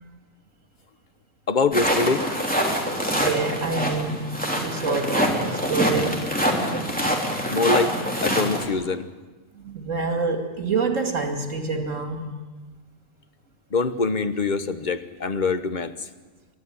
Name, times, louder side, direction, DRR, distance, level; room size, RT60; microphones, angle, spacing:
voice 1, 1.5-2.3 7.5-7.9 8.2-9.1 13.7-15.9, left 4 dB, 40° left, 10 dB, 1.2 m, -24 dB
sound 1, 1.7-8.7, equal, 5° left, 3.3 m, -25 dB
voice 2, 3.1-4.3 4.6-6.2 9.6-12.3, right 4 dB, 80° right, 4 dB, 2.8 m, -26 dB
29.5 x 12.5 x 9.6 m, 1.3 s
omnidirectional pair, 1.3 m